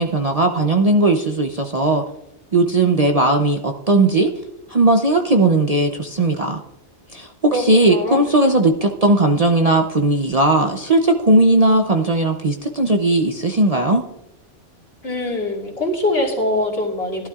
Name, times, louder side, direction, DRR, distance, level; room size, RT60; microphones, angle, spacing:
voice 1, 0.0-2.0 2.5-4.3 4.7-6.6 7.1-14.0, right 2 dB, 40° right, 4 dB, 0.6 m, -17 dB
voice 2, 7.5-8.2 15.0-17.3, left 1 dB, 60° left, -2 dB, 2.7 m, -23 dB
18.0 x 12.0 x 2.4 m, 0.92 s
omnidirectional pair, 1.2 m